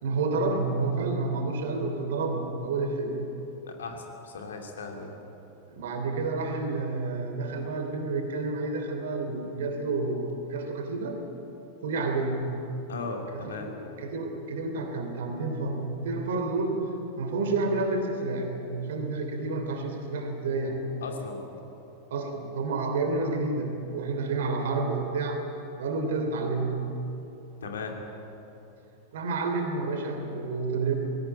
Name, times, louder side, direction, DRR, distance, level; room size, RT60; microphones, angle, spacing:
voice 1, 0.0-3.2 5.7-11.2 11.8-12.5 13.3-16.8 17.2-20.8 22.1-25.4 25.8-26.8 29.1-30.9, right 3 dB, 60° right, 5 dB, 3.1 m, -29 dB
voice 2, 3.6-5.2 12.9-13.7 21.0-21.5 27.6-27.9, left 4 dB, 65° left, 2 dB, 2.8 m, -37 dB
20.0 x 17.0 x 8.8 m, 2.9 s
figure-of-eight pair, 90°, 0 cm